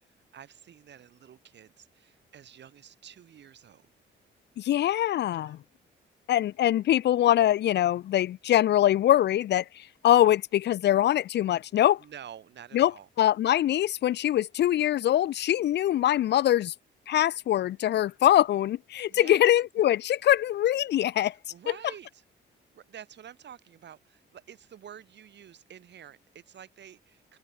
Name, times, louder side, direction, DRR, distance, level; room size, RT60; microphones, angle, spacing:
voice 1, 0.3-3.9 5.3-5.6 12.0-13.1 19.1-19.4 21.3-22.2 22.7-27.4, right 9 dB, 60° right, 4.8 m, -49 dB
voice 2, 4.6-5.6 6.3-12.0 12.7-12.9 13.2-16.7 17.1-21.3, left 12 dB, 60° left, 0.5 m, -23 dB
open air
cardioid pair, 90°, 20 cm